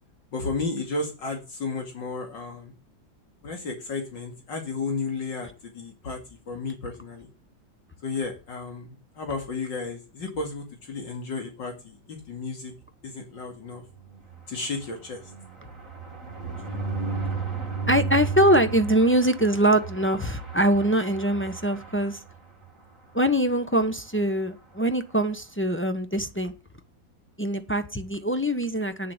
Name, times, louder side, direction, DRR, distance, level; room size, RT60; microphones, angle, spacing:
voice 1, 0.3-2.7 3.4-6.2 6.5-7.3 8.0-12.7 13.0-13.8 14.5-15.2, left 3 dB, 65° left, 2.9 m, -33 dB
sound 1, 13.8-22.7 23.1-23.3 23.5-23.6 23.9-24.2, right 4 dB, 40° right, 2.7 m, -34 dB
voice 2, 17.9-22.2 23.1-26.5 27.4-29.1, right 1 dB, 15° left, 0.4 m, -23 dB
9.5 x 7.2 x 7.9 m
omnidirectional pair, 2.1 m